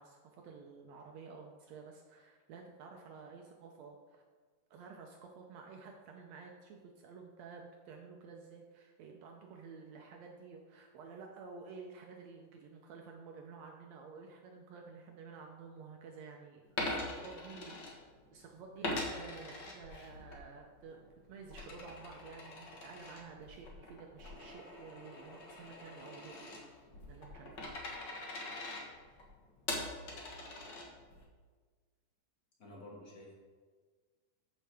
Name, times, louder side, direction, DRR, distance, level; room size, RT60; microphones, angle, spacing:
voice 1, 0.0-4.2 4.7-18.0 18.3-21.0 21.3-26.4 27.1-27.8, right 5 dB, 80° right, 1 dB, 1.5 m, -52 dB
Coin (dropping), 16.7-18.4 18.8-20.4 20.8-31.2, left 2 dB, 55° left, 1.2 m, -43 dB
voice 2, 32.6-33.4, left 1 dB, 35° left, -4 dB, 1.7 m, -51 dB
14.0 x 5.5 x 3.5 m, 1.5 s
omnidirectional pair, 3.9 m